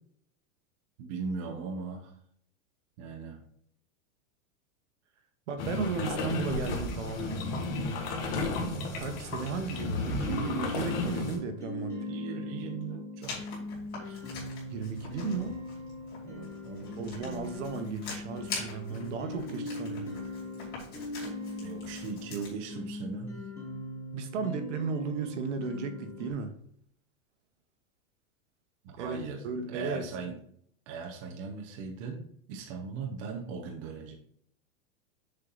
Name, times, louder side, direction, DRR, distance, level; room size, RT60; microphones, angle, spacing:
voice 1, 1.0-2.1 3.0-3.4 12.1-14.2 16.2-17.1 21.6-23.4 28.8-29.4 29.7-30.4 30.9-34.1, right 5 dB, 25° right, 0.6 m, -39 dB
voice 2, 5.5-7.4 9.0-12.0 14.7-15.6 17.0-20.1 24.1-26.5 29.0-30.1, right 5 dB, 60° right, 1.1 m, -35 dB
sound 1, 5.6-11.4, left 2 dB, 45° left, 1.4 m, -33 dB
sound 2, 10.2-26.3, left 2 dB, 5° left, 1.4 m, -40 dB
Writing, 13.2-22.5, left 4 dB, 25° left, 2.5 m, -44 dB
6.7 x 4.5 x 3.9 m
supercardioid pair, 175°, 41 cm